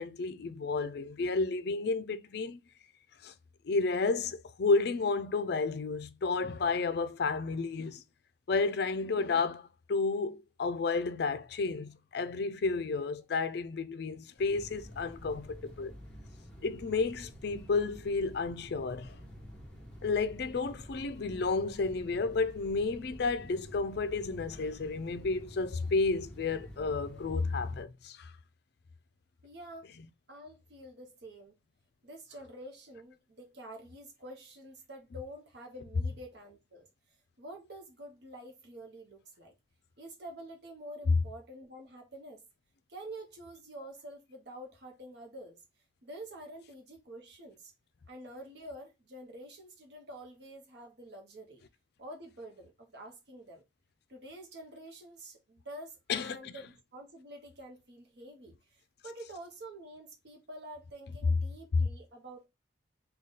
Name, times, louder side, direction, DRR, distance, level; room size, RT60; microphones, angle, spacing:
voice 1, 0.0-2.6 3.2-3.3 3.6-8.0 8.5-15.9 16.6-19.2 20.0-28.3 56.1-56.5 61.7-61.9, left 4 dB, 60° left, 0.4 m, -31 dB
sound 1, 14.4-27.8, equal, 5° left, 1.2 m, -49 dB
voice 2, 29.4-29.9 30.3-31.5 32.0-36.9 37.4-39.5 40.0-42.4 42.9-45.6 46.0-47.7 48.1-51.6 52.0-53.6 54.1-62.5, right 1 dB, 60° right, 0.8 m, -48 dB
3.9 x 2.3 x 3.6 m
head